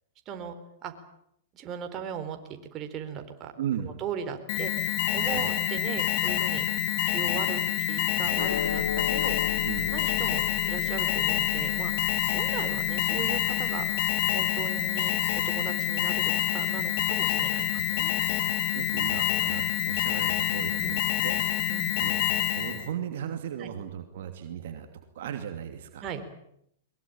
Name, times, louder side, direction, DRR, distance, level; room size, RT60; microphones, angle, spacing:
voice 1, 0.3-0.6 0.8-0.9 1.5-3.5 3.8-6.7 7.1-9.4 9.9-11.9 12.3-13.8 14.3-18.1 20.8-21.0 21.7-22.0 23.6-23.7 26.0-26.2, right 8 dB, 30° right, 6 dB, 4.1 m, -38 dB
voice 2, 3.6-3.9 5.2-5.5 9.6-9.9 17.7-17.8 18.7-21.4 22.0-22.2 22.5-24.9 25.1-26.1, right 9 dB, 65° right, 6 dB, 2.7 m, -36 dB
Alarm, 4.5-22.9, left 12 dB, 50° left, 2.4 m, -27 dB
sound 1, 8.4-14.9, left 9 dB, 80° left, 1.0 m, -37 dB
22.5 x 22.0 x 8.9 m, 0.74 s
hypercardioid pair, 115°, 0 cm